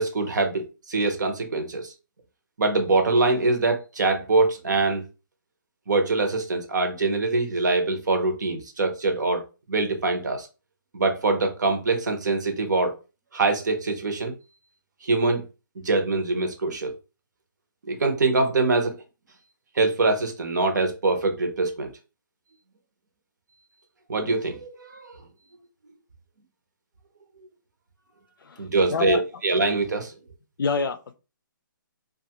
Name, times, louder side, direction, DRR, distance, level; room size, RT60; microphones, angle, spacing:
voice 1, 0.0-1.9 2.6-5.0 5.9-9.4 9.7-10.5 10.9-12.9 13.3-14.3 15.0-15.4 15.8-16.9 17.9-19.0 19.7-21.9 24.1-25.1 28.6-30.1, right 3 dB, 60° right, 0.7 m, -24 dB
voice 2, 28.9-29.2 30.6-31.1, left 5 dB, 75° left, 0.4 m, -26 dB
2.5 x 2.3 x 2.8 m
hypercardioid pair, 180°, 11 cm